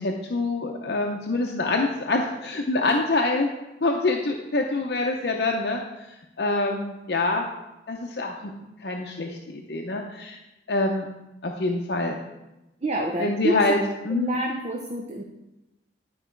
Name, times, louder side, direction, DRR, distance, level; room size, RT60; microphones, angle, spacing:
voice 1, 0.0-3.5 3.8-7.4 7.9-8.5 8.8-10.4 10.7-11.1 11.4-12.2 13.2-14.3, left 2 dB, 65° left, 1 dB, 0.7 m, -26 dB
voice 2, 12.8-13.7 14.1-15.2, right 1 dB, 35° right, 1 dB, 0.7 m, -27 dB
11.5 x 4.7 x 4.5 m, 0.98 s
head